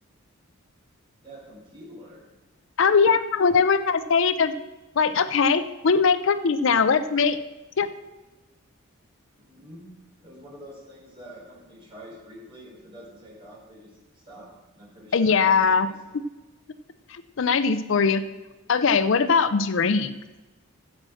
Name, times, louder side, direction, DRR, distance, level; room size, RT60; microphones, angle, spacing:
voice 1, 1.2-2.3 9.4-9.8 10.2-16.0, equal, 25° right, -6 dB, 4.3 m, -46 dB
voice 2, 2.8-4.5 5.0-7.4 7.8-7.9 15.1-15.9 17.1-18.2 18.7-20.1, left 5 dB, 60° left, 12 dB, 0.5 m, -21 dB
10.5 x 7.7 x 6.3 m, 1.2 s
head